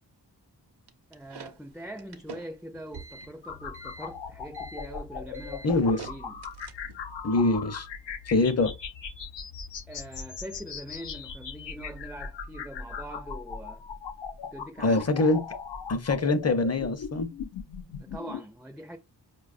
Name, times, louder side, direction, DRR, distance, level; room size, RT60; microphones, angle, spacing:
sound 1, 0.9-7.1, right 4 dB, 70° right, 0.6 m, -46 dB
voice 1, 1.1-6.4 9.9-13.8 14.5-15.1 18.0-19.0, right 1 dB, ahead, 0.4 m, -43 dB
sound 2, 3.4-18.4, left 6 dB, 85° left, 0.6 m, -39 dB
voice 2, 5.6-6.1 7.2-7.9 8.3-8.7 14.8-15.4 15.9-17.3, left 2 dB, 40° left, 0.6 m, -24 dB
4.6 x 2.3 x 2.4 m
cardioid pair, 45°, 41 cm